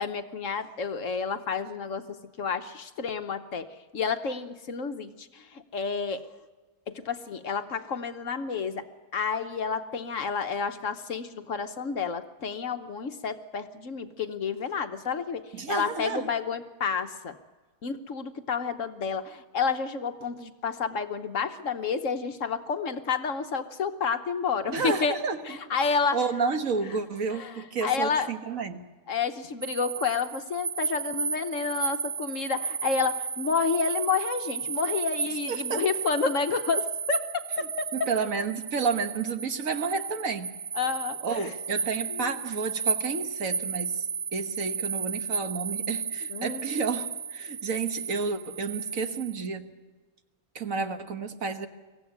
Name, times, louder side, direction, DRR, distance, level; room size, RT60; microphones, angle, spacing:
voice 1, 0.0-6.2 6.9-8.9 9.1-17.4 17.8-25.2 25.5-26.2 27.3-28.3 29.1-38.1 40.7-41.5 42.1-42.4 46.3-46.7, left 5 dB, 55° left, 9 dB, 1.3 m, -30 dB
voice 2, 15.5-16.3 24.7-25.4 26.1-28.9 35.5-35.8 37.9-40.5 41.2-44.1 44.3-49.7 50.5-51.7, right 5 dB, 60° right, 8 dB, 1.7 m, -31 dB
sound 1, 29.6-49.5, right 5 dB, 40° right, 1.1 m, -33 dB
23.5 x 16.0 x 9.5 m, 1.3 s
omnidirectional pair, 1.7 m